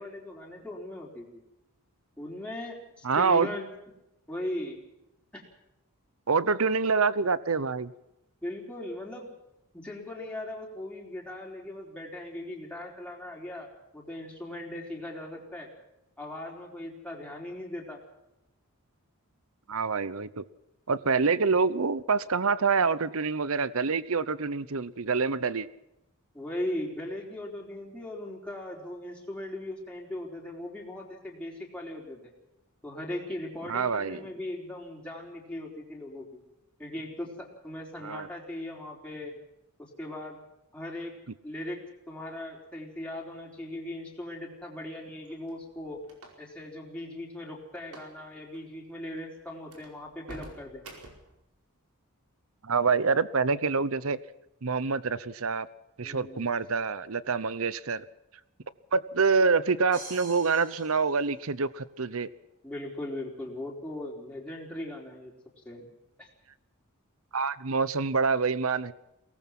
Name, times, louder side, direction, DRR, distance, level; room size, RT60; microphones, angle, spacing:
voice 1, 0.0-1.4 2.2-3.7 4.3-4.8 5.3-5.5 8.4-9.3 9.7-13.7 13.9-15.7 16.2-18.0 21.2-21.4 26.3-32.3 32.8-36.4 36.8-39.4 39.8-40.4 40.7-41.1 41.4-41.8 42.1-46.0 46.4-50.8 56.0-56.6 62.6-65.3 65.6-65.9 66.2-66.3, left 1 dB, 5° left, -2 dB, 4.3 m, -39 dB
voice 2, 3.0-3.5 6.3-7.9 19.7-20.4 20.9-25.7 33.7-34.3 38.0-38.3 52.6-54.2 54.6-55.7 56.0-58.0 58.9-62.3 67.3-68.9, right 4 dB, 70° right, 17 dB, 0.8 m, -26 dB
sound 1, 45.2-46.6 47.8-48.2 48.4-48.6 49.1-49.2 49.7-51.4, right 2 dB, 90° right, 4.8 m, -47 dB
sound 2, 59.9-61.9, right 3 dB, 35° right, 5.5 m, -46 dB
23.0 x 18.5 x 6.1 m, 0.87 s
head